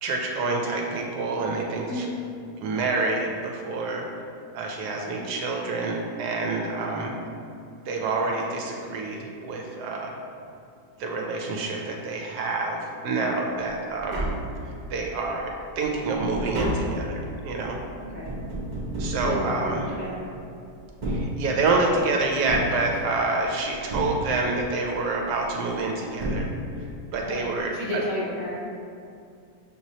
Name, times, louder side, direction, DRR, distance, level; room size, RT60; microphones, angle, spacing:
voice 1, 0.0-2.1 2.6-4.1 4.5-7.1 7.9-10.1 11.0-14.3 14.7-17.8 19.0-19.8 21.1-26.5 27.1-28.0, right 3 dB, 75° right, 0 dB, 1.1 m, -27 dB
Tap, 14.0-15.1 15.5-20.3 20.9-21.9 22.5-23.4 23.9-24.7 25.8-25.9 26.2-27.0 27.3-27.4, right 1 dB, 55° right, 0.4 m, -31 dB
voice 2, 19.2-20.3 27.3-28.6, left 1 dB, 60° left, -6 dB, 0.9 m, -32 dB
6.4 x 3.0 x 2.7 m, 2.4 s
omnidirectional pair, 1.9 m